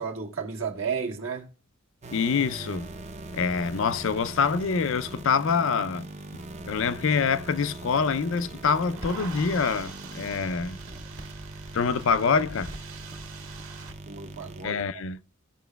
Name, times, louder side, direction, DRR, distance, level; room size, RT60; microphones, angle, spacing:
voice 1, 0.0-1.5 14.0-14.8, right 6 dB, 70° right, 1.5 m, -32 dB
sound 1, 2.0-14.7, right 2 dB, 35° right, 0.6 m, -41 dB
voice 2, 2.1-2.9 3.3-6.1 6.6-10.8 11.7-12.7 14.6-15.2, left 5 dB, 65° left, 0.5 m, -25 dB
sound 2, 7.8-13.9, right 4 dB, 85° right, 1.8 m, -45 dB
Crackle, 8.2-9.7 9.9-11.5 11.9-13.2 13.7-14.4, right 1 dB, 55° right, 1.6 m, -45 dB
15.5 x 5.9 x 2.2 m
head